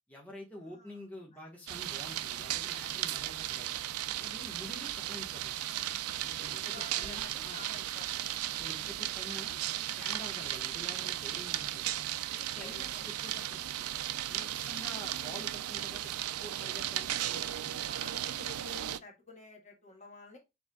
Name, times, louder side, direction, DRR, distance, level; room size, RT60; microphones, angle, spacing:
voice 1, 0.1-3.8 4.2-5.6 6.2-7.6 8.5-9.6 10.0-12.0 12.3-17.6, left 1 dB, 5° left, -3 dB, 1.2 m, -48 dB
voice 2, 0.6-1.0 1.3-1.4 3.5-3.6 6.5-8.2 8.5-8.6 9.3-9.5 12.6-13.3 16.8-16.9 17.7-20.4, left 3 dB, 35° left, 1 dB, 1.5 m, -52 dB
sound 1, 1.7-19.0, right 12 dB, 80° right, 0.4 m, -36 dB
6.7 x 3.4 x 2.3 m, 0.22 s
head